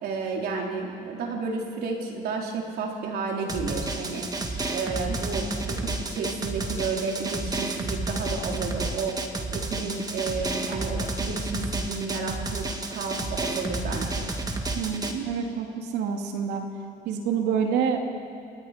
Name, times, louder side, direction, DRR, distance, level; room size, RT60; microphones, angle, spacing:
voice 1, 0.0-4.3 4.7-9.2 9.5-12.6 12.9-14.3, right 4 dB, 70° right, 0 dB, 4.0 m, -31 dB
Drum, 3.5-15.1, right 2 dB, 20° right, 2.0 m, -31 dB
voice 2, 14.7-16.6 17.0-18.0, right 7 dB, 90° right, 3 dB, 2.6 m, -27 dB
28.5 x 19.0 x 5.2 m, 2.5 s
cardioid pair, 110°, 17 cm